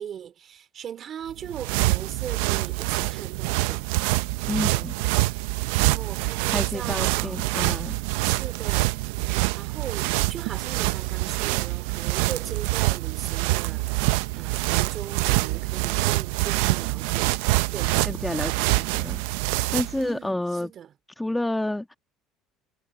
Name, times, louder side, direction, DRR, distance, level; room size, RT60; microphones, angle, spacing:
voice 1, 0.0-3.9 5.7-7.5 8.2-8.9 9.5-17.4 17.7-18.1 20.0-20.9, right 9 dB, 45° right, 3.2 m, -39 dB
sound 1, 1.3-20.1, right 20 dB, 90° right, 0.5 m, -25 dB
voice 2, 4.5-5.0 6.5-8.0 18.0-19.2 19.7-20.7 21.2-21.9, left 1 dB, 5° left, 1.5 m, -29 dB
cardioid pair, 115°, 0 cm